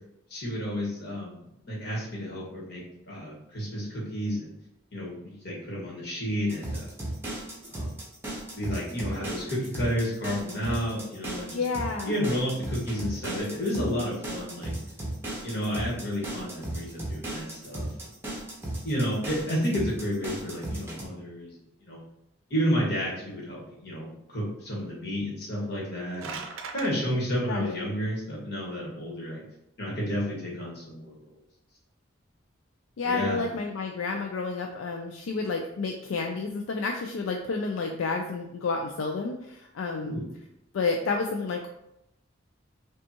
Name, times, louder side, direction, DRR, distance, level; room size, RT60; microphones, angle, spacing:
voice 1, 0.3-4.5 4.9-6.9 7.7-7.9 8.5-11.6 12.0-14.7 15.4-17.9 18.8-21.5 21.8-22.0 22.5-26.4 26.7-29.4 29.8-31.3 33.0-33.5 40.0-40.4, equal, 50° left, -4 dB, 1.4 m, -31 dB
sound 1, 6.5-21.0, right 1 dB, 10° right, 0.8 m, -35 dB
voice 2, 11.5-12.1 27.5-27.8 33.0-40.2 40.7-41.8, left 4 dB, 80° left, 2 dB, 0.4 m, -30 dB
sound 2, 25.8-26.9, right 5 dB, 85° right, 0.5 m, -39 dB
5.2 x 2.3 x 2.8 m, 0.83 s
head